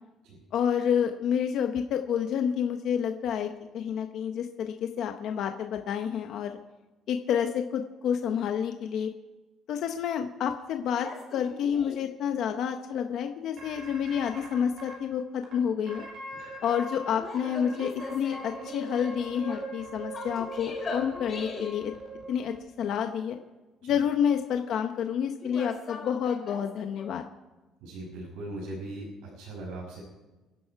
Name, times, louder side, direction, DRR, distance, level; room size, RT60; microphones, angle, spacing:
voice 1, 0.5-6.6 7.1-9.1 9.7-16.1 16.6-21.9 22.3-23.4 23.8-27.3, left 8 dB, 50° left, 5 dB, 0.9 m, -29 dB
sound 1, 11.0-12.1 17.1-19.7 20.1-21.9 25.4-27.1, left 4 dB, 25° left, 3.6 m, -41 dB
sound 2, 13.6-14.9 15.4-15.5 15.9-17.1 17.4-22.6, right 2 dB, 40° right, 4.5 m, -41 dB
voice 2, 27.8-30.0, right 1 dB, 85° right, -5 dB, 6.4 m, -39 dB
26.0 x 11.5 x 4.7 m, 1.1 s
cardioid pair, 180°, 0 cm